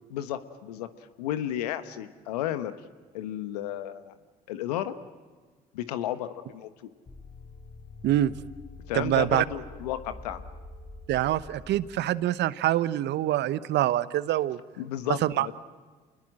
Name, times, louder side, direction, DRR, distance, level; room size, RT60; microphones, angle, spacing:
voice 1, 0.1-0.9 1.2-2.7 3.1-4.1 4.5-5.0 5.7-6.7 8.9-10.4 14.8-15.5, left 12 dB, 85° left, 11 dB, 1.3 m, -33 dB
sound 1, 7.1-12.0, left 3 dB, 30° left, 6.0 m, -45 dB
voice 2, 8.9-9.4 11.1-14.6 15.2-15.5, right 13 dB, 60° right, 17 dB, 1.0 m, -25 dB
28.0 x 21.0 x 7.8 m, 1.4 s
hypercardioid pair, 60°, 20 cm